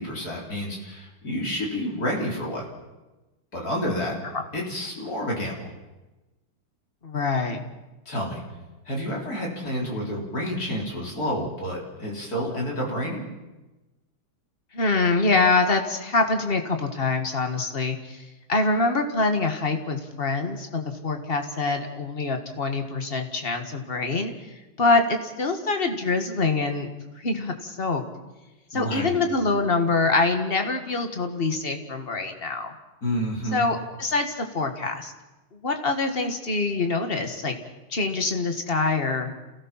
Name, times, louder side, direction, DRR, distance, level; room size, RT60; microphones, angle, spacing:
voice 1, 0.0-2.7 3.5-4.2 4.5-5.7 8.1-8.4 8.9-13.3 28.7-29.2 33.0-33.7, equal, 45° left, -1 dB, 4.3 m, -29 dB
voice 2, 7.0-7.6 14.7-18.2 18.5-24.3 24.8-26.9 27.2-28.0 28.7-32.7 33.5-35.1 35.6-37.5 37.9-39.3, left 3 dB, 30° left, 5 dB, 1.8 m, -25 dB
28.0 x 17.0 x 5.8 m, 1.1 s
omnidirectional pair, 2.3 m